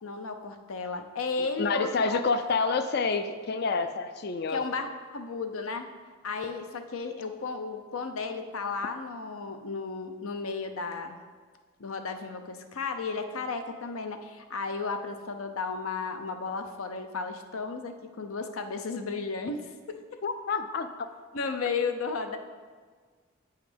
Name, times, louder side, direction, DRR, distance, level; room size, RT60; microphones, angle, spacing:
voice 1, 0.0-2.4 4.5-5.9 6.2-11.2 11.8-20.0 21.3-22.4, left 4 dB, 80° left, 7 dB, 0.7 m, -34 dB
voice 2, 1.4-4.6 20.2-21.1, left 4 dB, 50° left, 10 dB, 0.4 m, -28 dB
8.3 x 5.7 x 5.1 m, 1.5 s
head